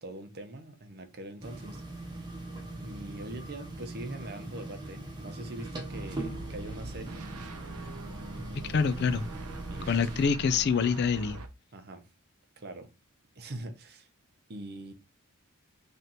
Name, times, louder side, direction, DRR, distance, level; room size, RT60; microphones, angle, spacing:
voice 1, 0.0-1.8 2.8-7.2 9.7-10.1 11.7-12.0 12.6-12.9 13.4-14.1 14.5-14.9, right 1 dB, 50° right, 0.8 m, -42 dB
sound 1, 1.4-10.2, right 1 dB, 20° right, 1.0 m, -41 dB
sound 2, 5.9-11.5, right 2 dB, 90° right, 0.7 m, -43 dB
voice 2, 8.5-9.3 9.9-11.4, left 5 dB, 50° left, 0.4 m, -26 dB
3.2 x 2.9 x 4.0 m
head